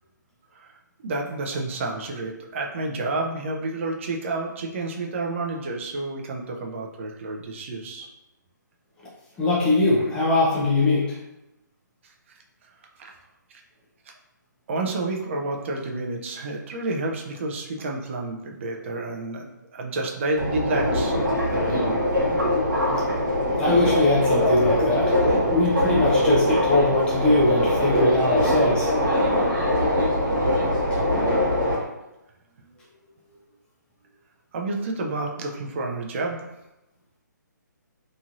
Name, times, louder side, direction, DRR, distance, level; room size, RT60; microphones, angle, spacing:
voice 1, 1.0-8.1 12.3-12.4 13.0-13.1 14.7-21.2 21.5-22.0 34.5-36.5, right 2 dB, 40° right, 0 dB, 0.5 m, -30 dB
voice 2, 9.4-11.2 23.6-28.9 30.8-31.0, left 2 dB, 10° left, -6 dB, 0.6 m, -21 dB
Subway metro underground, 20.4-31.8, left 1 dB, 85° right, 1.2 m, -22 dB
3.0 x 2.6 x 2.5 m, 0.95 s
hypercardioid pair, 155°, 10 cm